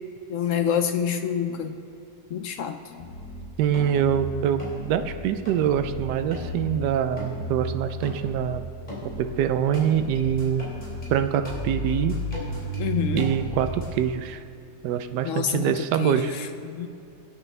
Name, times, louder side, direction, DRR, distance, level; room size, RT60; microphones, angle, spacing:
voice 1, 0.3-1.7 2.3-3.1 12.8-13.3 15.2-16.9, left 8 dB, 65° left, 7 dB, 0.8 m, -27 dB
sound 1, 3.0-3.4 3.7-4.2 4.6-5.1 5.5-5.9 6.3-6.8 7.2-7.6 8.0-8.5 8.9-9.4 9.7-11.1 11.4-13.9, left 1 dB, 25° left, 3.9 m, -33 dB
voice 2, 3.6-8.6 9.0-10.6 11.1-12.2 13.1-14.4 14.8-16.3, right 9 dB, 85° right, 9 dB, 1.2 m, -24 dB
25.0 x 9.3 x 3.3 m, 2.6 s
omnidirectional pair, 1.8 m